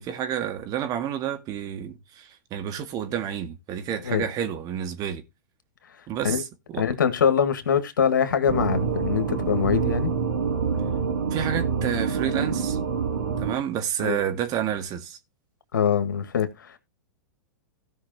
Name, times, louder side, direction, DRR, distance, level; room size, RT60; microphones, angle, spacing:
voice 1, 0.0-5.2 6.1-6.9 11.3-12.8 13.4-15.2, right 9 dB, 35° right, 1.8 m, -30 dB
voice 2, 6.8-10.1 14.0-14.2 15.7-16.8, left 7 dB, 80° left, 1.8 m, -23 dB
sound 1, 8.5-13.6, right 6 dB, 85° right, 2.9 m, -26 dB
16.5 x 5.7 x 2.9 m
hypercardioid pair, 110°, 10 cm